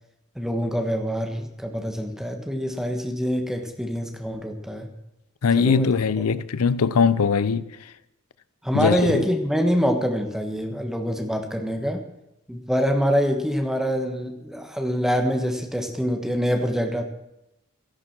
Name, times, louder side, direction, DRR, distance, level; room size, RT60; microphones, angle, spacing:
voice 1, 0.3-4.9 5.6-5.9 8.6-12.0 12.5-17.1, equal, ahead, 1.4 m, -25 dB
voice 2, 5.4-7.9 8.7-9.2, left 5 dB, 85° left, 0.6 m, -21 dB
13.5 x 11.5 x 6.1 m
head